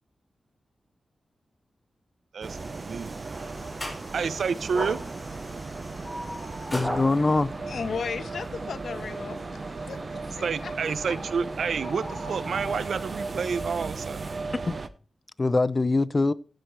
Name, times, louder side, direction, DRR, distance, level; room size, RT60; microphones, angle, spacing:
voice 1, 2.3-3.1 4.1-5.0 10.4-14.2, right 6 dB, 75° right, 0.8 m, -29 dB
sound 1, 2.4-14.9, right 3 dB, 40° right, 1.0 m, -36 dB
sound 2, 2.5-11.7, left 1 dB, 10° left, 4.6 m, -45 dB
sound 3, 3.3-13.3, equal, 15° right, 6.8 m, -41 dB
voice 2, 6.7-7.5 14.7-14.8 15.4-16.3, left 3 dB, 30° left, 0.7 m, -23 dB
voice 3, 7.7-10.7 11.0-11.2, left 5 dB, 80° left, 1.3 m, -36 dB
15.5 x 10.5 x 3.3 m
wide cardioid pair, 100°, 0 cm